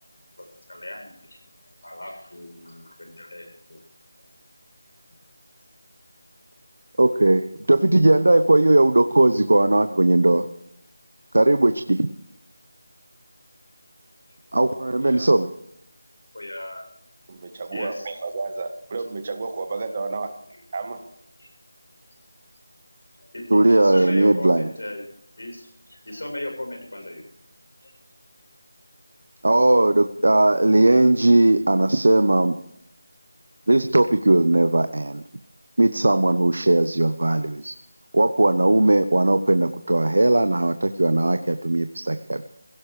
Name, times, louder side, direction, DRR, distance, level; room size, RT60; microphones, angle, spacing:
voice 1, 0.4-1.4 1.8-3.8 14.6-15.3 16.3-16.8 17.7-18.1 21.4-21.5 23.2-25.0 25.4-27.3 27.8-27.9, left 1 dB, 80° left, 3 dB, 7.6 m, -37 dB
voice 2, 7.0-10.5 11.3-12.1 14.5-15.5 23.5-24.6 29.4-32.5 33.7-35.2 35.8-37.7 38.1-42.4, right 2 dB, 75° right, 10 dB, 0.9 m, -18 dB
voice 3, 17.3-20.3 20.7-21.0, right 3 dB, 25° right, 8 dB, 1.2 m, -31 dB
23.0 x 16.5 x 3.3 m, 0.76 s
figure-of-eight pair, 175°, 0 cm